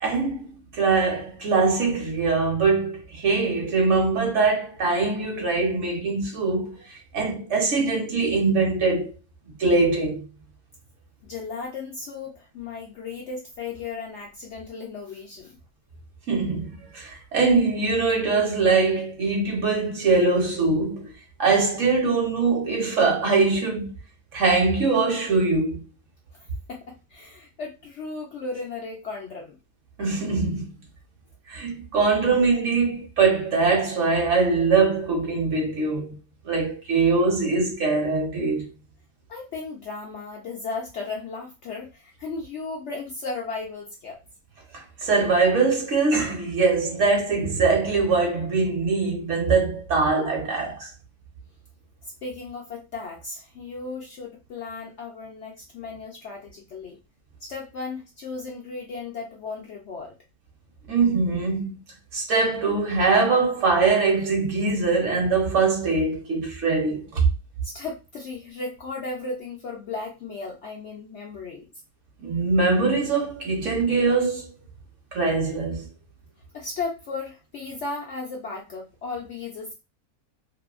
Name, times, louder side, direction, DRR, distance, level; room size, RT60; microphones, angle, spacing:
voice 1, 0.0-9.1 9.6-10.3 16.3-21.1 21.4-23.9 24.3-25.8 30.0-30.7 31.5-36.2 36.4-38.7 44.7-50.9 60.9-61.8 62.1-67.3 72.2-74.5 75.1-75.9, right 4 dB, 60° right, 1.0 m, -22 dB
voice 2, 11.2-15.6 26.7-29.6 39.3-44.2 52.0-57.0 57.4-60.1 67.6-71.7 76.5-79.7, left 4 dB, 65° left, 0.7 m, -35 dB
2.7 x 2.5 x 2.3 m
omnidirectional pair, 1.6 m